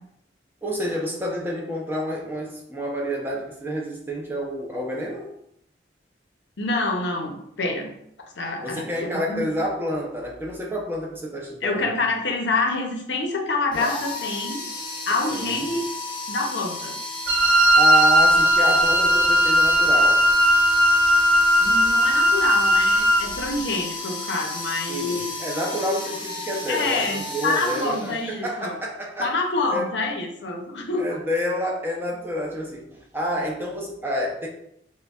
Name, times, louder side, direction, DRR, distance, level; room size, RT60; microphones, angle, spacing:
voice 1, 0.6-5.3 8.6-11.8 15.3-15.6 17.8-20.3 24.9-29.3 29.7-29.9 31.0-34.5, equal, 10° right, -2 dB, 0.6 m, -29 dB
voice 2, 6.6-7.9 8.4-9.5 11.6-14.6 15.1-15.8 16.3-17.0 21.6-25.3 26.7-28.8 29.2-31.2, left 3 dB, 85° left, 2 dB, 0.7 m, -27 dB
sound 1, 13.7-28.6, left 2 dB, 30° left, 0.9 m, -33 dB
Wind instrument woodwind instrument, 17.3-23.3, equal, 90° right, 0.4 m, -17 dB
6.1 x 2.2 x 2.4 m, 0.75 s
head